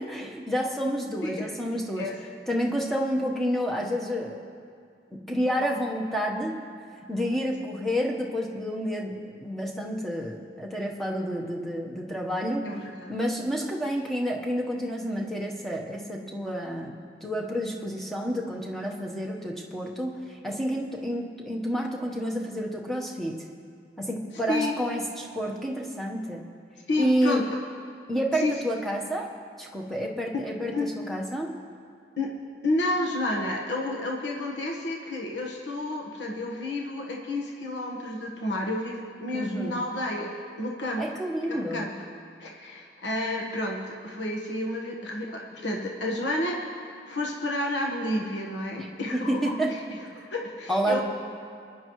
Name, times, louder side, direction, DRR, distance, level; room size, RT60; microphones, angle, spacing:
voice 1, 0.0-2.1 2.5-4.4 5.3-6.5 7.1-12.7 13.1-23.5 24.0-26.5 27.0-27.4 28.1-29.3 29.6-31.5 39.3-39.8 41.0-41.9 48.8-49.7 50.7-51.0, equal, ahead, -1 dB, 1.1 m, -29 dB
voice 2, 12.6-13.1 24.5-24.8 26.9-27.4 28.4-28.5 30.7-30.9 32.2-32.4 32.6-41.0 41.5-41.9 42.4-49.8 50.1-51.0, left 1 dB, 80° left, -1 dB, 1.3 m, -30 dB
21.5 x 10.0 x 3.1 m, 2.2 s
head